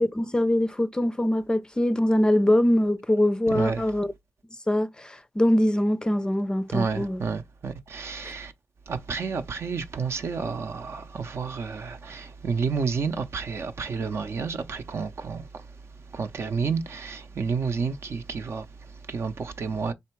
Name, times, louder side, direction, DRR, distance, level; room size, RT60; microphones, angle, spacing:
voice 1, 0.0-4.1 4.7-7.2 8.2-8.3, left 1 dB, 15° left, 0.5 m, -23 dB
voice 2, 3.5-3.9 6.7-8.5 8.9-15.7 16.1-19.9, right 5 dB, 60° right, 0.6 m, -30 dB
3.4 x 2.7 x 4.5 m
cardioid pair, 70°, 5 cm